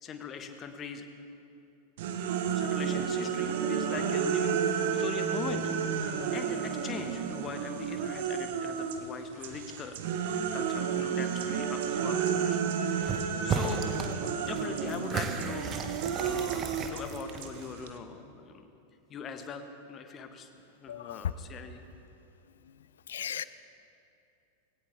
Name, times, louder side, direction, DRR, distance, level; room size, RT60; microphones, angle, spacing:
voice 1, 0.0-1.0 2.5-5.7 6.1-10.0 10.3-12.7 13.0-13.2 13.4-13.9 14.4-15.9 16.1-18.7 19.1-20.5 20.8-21.8, left 6 dB, 30° left, 7 dB, 1.2 m, -41 dB
sound 1, 2.0-9.1 9.4-18.0, right 7 dB, 55° right, 1.0 m, -31 dB
sound 2, 13.0-13.2 13.5-14.1 14.4-17.8, right 6 dB, 30° right, 1.0 m, -34 dB
voice 2, 20.9-21.2 23.1-23.4, left 9 dB, 65° left, 16 dB, 0.5 m, -37 dB
19.0 x 17.0 x 3.3 m, 2.7 s
figure-of-eight pair, 90°, 0 cm